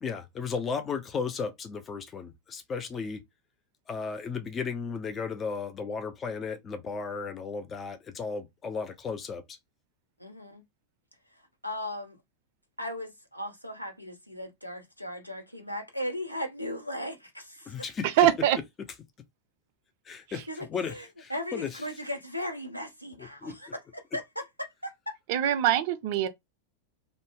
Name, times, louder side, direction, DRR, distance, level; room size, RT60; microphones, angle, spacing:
voice 1, 0.0-3.2 3.9-9.6 17.7-18.1 20.1-21.8 23.2-23.6, left 5 dB, 25° left, 0.4 m, -35 dB
voice 2, 10.2-10.6 11.6-12.2 12.8-17.7 20.5-25.1, left 1 dB, 90° left, 0.7 m, -37 dB
voice 3, 18.2-18.6 25.3-26.3, right 12 dB, 50° right, 0.5 m, -23 dB
2.5 x 2.1 x 3.3 m
figure-of-eight pair, 90°, 0 cm